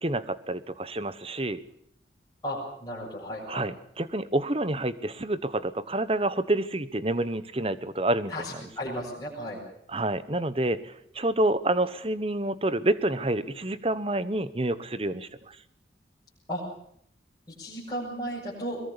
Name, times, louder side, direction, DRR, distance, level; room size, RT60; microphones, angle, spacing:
voice 1, 0.0-1.6 3.5-8.5 9.9-15.6, right 1 dB, 30° right, 15 dB, 1.1 m, -28 dB
voice 2, 2.4-3.7 8.3-9.6 16.5-16.6 17.6-18.8, equal, 20° left, -8 dB, 7.5 m, -34 dB
22.5 x 21.5 x 6.9 m, 0.67 s
head